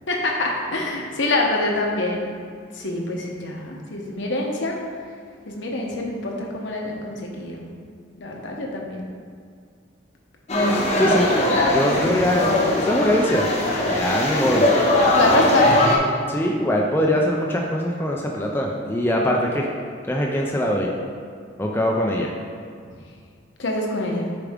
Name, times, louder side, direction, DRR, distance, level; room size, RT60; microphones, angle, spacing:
voice 1, 0.1-2.3 2.7-4.8 5.5-7.7 8.2-9.0 14.7-14.8 15.1-15.8 22.8-22.9 23.6-24.3, left 2 dB, 70° left, -1 dB, 1.0 m, -25 dB
sound 1, 10.5-16.0, left 1 dB, 35° left, 0.8 m, -20 dB
voice 2, 11.0-11.3 11.7-13.5 13.9-14.7 16.3-19.7 20.1-20.9 21.6-22.3, equal, 10° left, -1 dB, 0.4 m, -22 dB
6.9 x 4.6 x 3.6 m, 2.2 s
head